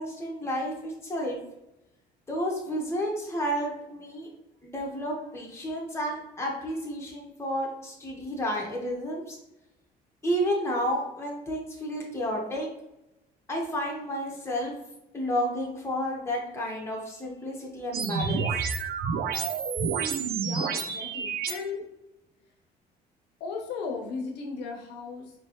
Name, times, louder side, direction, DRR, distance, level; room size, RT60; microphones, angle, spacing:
voice 1, 0.0-1.4 2.3-4.3 4.6-9.4 10.2-12.7 13.5-14.7 15.1-18.5, equal, 15° left, -2 dB, 1.2 m, -31 dB
sound 1, 17.9-21.5, right 6 dB, 65° right, 0.5 m, -29 dB
voice 2, 20.4-21.8 23.4-25.3, left 4 dB, 85° left, 2 dB, 0.8 m, -36 dB
4.3 x 3.0 x 3.0 m, 0.91 s
cardioid pair, 110°, 17 cm